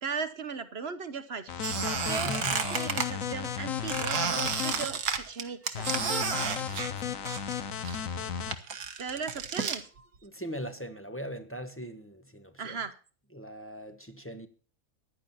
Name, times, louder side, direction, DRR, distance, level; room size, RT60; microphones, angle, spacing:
voice 1, 0.0-1.5 2.1-5.9 9.0-9.9 12.6-13.0, right 5 dB, 45° right, 1.2 m, -37 dB
sound 1, 1.5-4.9 5.7-8.6, left 8 dB, 65° left, 1.4 m, -34 dB
Squeak, 1.6-3.1 3.9-7.6 7.8-9.8, right 6 dB, 80° right, 1.7 m, -32 dB
voice 2, 2.1-2.6 6.9-7.0 10.2-12.8 13.3-14.5, equal, 10° left, 1.0 m, -40 dB
15.0 x 10.5 x 4.2 m
omnidirectional pair, 1.5 m